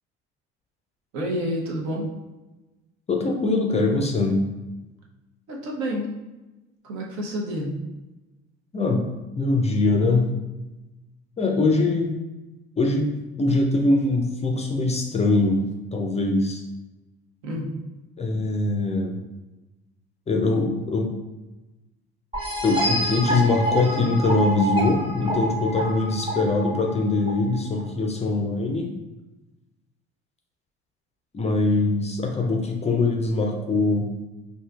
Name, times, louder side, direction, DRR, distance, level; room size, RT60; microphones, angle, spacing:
voice 1, 1.1-2.1 5.5-6.1 6.8-7.7 17.4-17.7, equal, 60° right, -1 dB, 0.9 m, -29 dB
voice 2, 3.1-4.4 8.7-9.0 9.4-10.3 11.4-12.1 12.8-13.1 13.4-15.6 15.9-16.6 18.2-19.2 20.3-21.1 22.6-28.9 31.3-34.1, left 2 dB, 20° left, 2 dB, 0.5 m, -22 dB
sound 1, 22.3-27.8, right 1 dB, 15° right, 1.1 m, -27 dB
4.3 x 2.6 x 2.3 m, 1.1 s
figure-of-eight pair, 55°, 32 cm